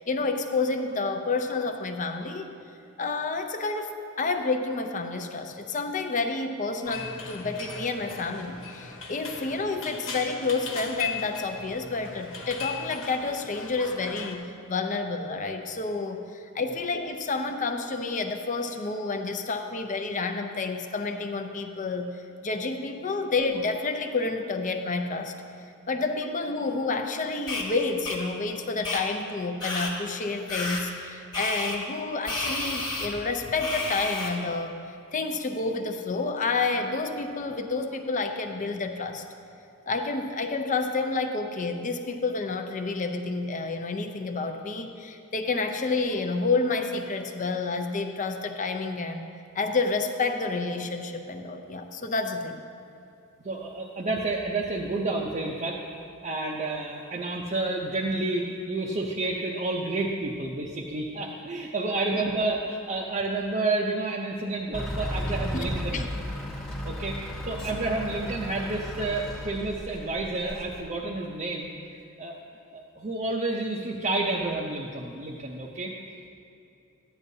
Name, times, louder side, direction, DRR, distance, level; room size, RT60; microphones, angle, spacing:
voice 1, 0.0-2.5 3.0-25.4 25.9-34.8 35.1-39.2 39.9-49.2 49.5-52.6 62.1-62.3 65.5-66.0, left 3 dB, 35° left, 6 dB, 0.6 m, -29 dB
sound 1, 6.8-14.3, left 5 dB, 65° left, 1.3 m, -38 dB
sound 2, 27.5-27.6 28.0-28.2 28.8-29.0 29.6-29.9 30.5-30.8 31.3-31.8 32.2-33.1 33.6-34.3, left 2 dB, 20° left, 1.4 m, -31 dB
voice 2, 53.4-55.8 56.2-66.1 66.8-72.4 72.7-76.0, right 2 dB, 35° right, -2 dB, 0.6 m, -30 dB
Truck / Idling, 64.7-70.8, left 1 dB, 5° left, 1.0 m, -34 dB
13.5 x 9.9 x 2.7 m, 2.6 s
head